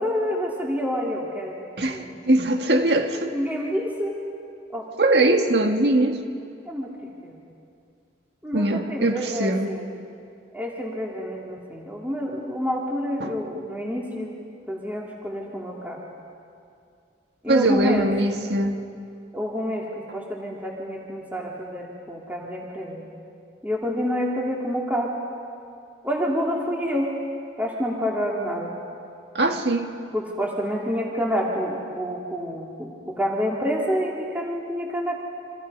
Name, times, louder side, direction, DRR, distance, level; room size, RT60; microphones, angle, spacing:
voice 1, 0.0-2.1 3.3-4.2 4.7-4.9 6.6-6.9 7.2-7.4 8.4-9.9 10.5-14.3 14.7-16.0 17.4-18.1 19.3-23.1 23.6-25.1 26.0-27.1 27.6-28.7 30.1-35.2, equal, 10° right, -2 dB, 2.6 m, -28 dB
voice 2, 1.8-3.3 5.0-6.2 8.5-9.7 13.2-13.3 17.5-18.8 29.3-29.9, right 2 dB, 70° right, 5 dB, 1.9 m, -21 dB
29.5 x 25.5 x 5.5 m, 2.4 s
head